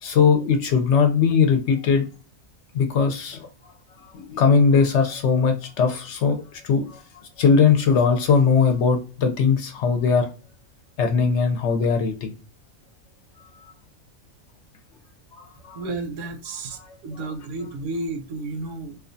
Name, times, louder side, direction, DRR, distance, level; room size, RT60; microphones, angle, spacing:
voice 1, 0.0-2.1 2.7-3.5 4.1-7.0 7.4-10.3 11.0-12.3 15.4-15.8 16.8-16.9, left 5 dB, 65° left, 0.8 m, -20 dB
voice 2, 15.7-19.0, right 2 dB, 70° right, 0.9 m, -32 dB
2.5 x 2.2 x 2.5 m
omnidirectional pair, 1.4 m